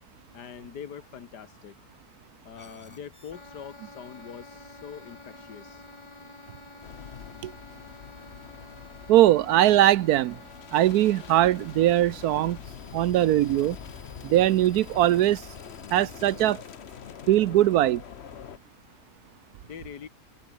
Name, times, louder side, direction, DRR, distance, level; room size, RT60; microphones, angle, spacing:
voice 1, 0.3-1.9 2.2-5.8 19.6-20.1, left 8 dB, 80° left, 2.1 m, -43 dB
sound 1, 2.5-16.5, left 3 dB, 20° left, 1.3 m, -50 dB
sound 2, 6.8-18.6, left 8 dB, 50° left, 1.0 m, -44 dB
voice 2, 9.1-10.4 10.7-12.6 12.9-13.8 14.2-15.4 15.9-16.6 17.3-18.0, right 13 dB, 75° right, 1.1 m, -21 dB
omnidirectional pair, 1.8 m